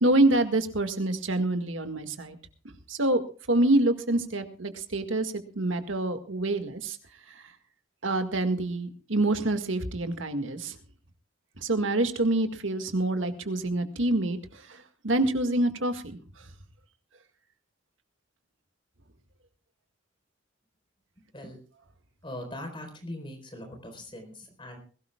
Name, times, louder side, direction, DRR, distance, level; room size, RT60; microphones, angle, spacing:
voice 1, 0.0-2.4 2.9-3.2 3.5-7.0 7.4-7.5 8.0-10.8 11.6-16.2, right 2 dB, 90° right, 7 dB, 1.9 m, -26 dB
voice 2, 22.2-24.8, left 1 dB, 25° left, 4 dB, 4.4 m, -41 dB
21.0 x 17.5 x 2.4 m, 0.38 s
head